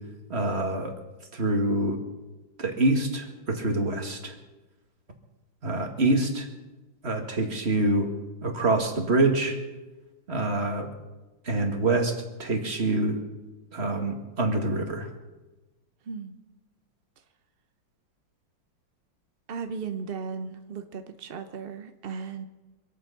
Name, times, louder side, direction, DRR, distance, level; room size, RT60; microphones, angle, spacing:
voice 1, 0.3-1.0 1.3-2.0 2.6-4.4 5.6-6.5 7.0-8.1 8.4-9.6 10.3-10.9 11.5-12.1 12.4-13.2 13.7-15.1, right 2 dB, 35° right, 4 dB, 2.0 m, -25 dB
voice 2, 16.1-16.4 19.5-22.4, right 5 dB, 55° right, 8 dB, 0.6 m, -36 dB
25.5 x 8.7 x 5.8 m, 1.1 s
omnidirectional pair, 2.1 m